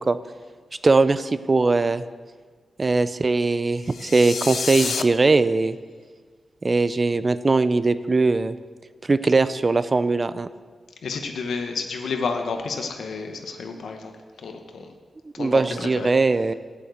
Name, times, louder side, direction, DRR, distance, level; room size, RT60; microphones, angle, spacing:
voice 1, 0.8-2.0 2.8-5.8 6.6-8.5 9.1-10.5 15.4-16.5, right 3 dB, 30° right, 14 dB, 0.4 m, -20 dB
sound 1, 3.8-5.0, left 6 dB, 65° left, 0.5 m, -29 dB
voice 2, 11.0-14.1 14.4-14.9 15.3-16.1, left 4 dB, 90° left, 4 dB, 0.9 m, -30 dB
9.0 x 7.2 x 8.0 m, 1.5 s
wide cardioid pair, 160°, 0 cm